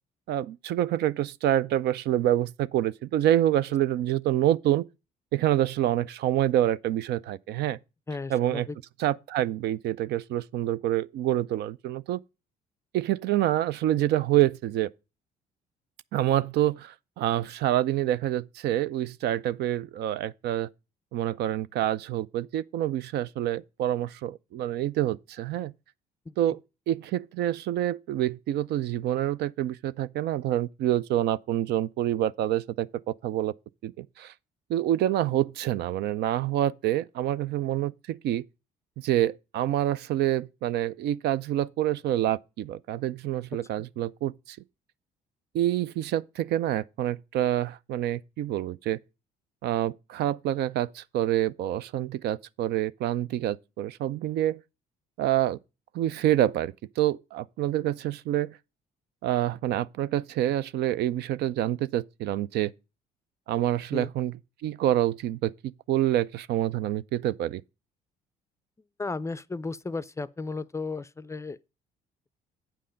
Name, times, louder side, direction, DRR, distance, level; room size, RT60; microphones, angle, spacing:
voice 1, 0.3-4.9 5.3-7.8 8.3-8.7 9.0-12.2 12.9-14.9 16.1-20.7 21.1-25.7 26.4-26.6 26.9-33.5 33.8-34.3 34.7-38.4 39.0-44.6 45.5-49.0 49.6-54.6 55.2-55.6 55.9-58.6 59.2-62.7 63.5-64.3 64.6-65.5 65.9-67.6, right 12 dB, 65° right, 0.4 m, -27 dB
voice 2, 8.1-8.8 26.3-26.4 63.9-64.1 69.0-71.6, left 3 dB, 15° left, 0.4 m, -34 dB
8.6 x 5.5 x 5.0 m
supercardioid pair, 65°, 19 cm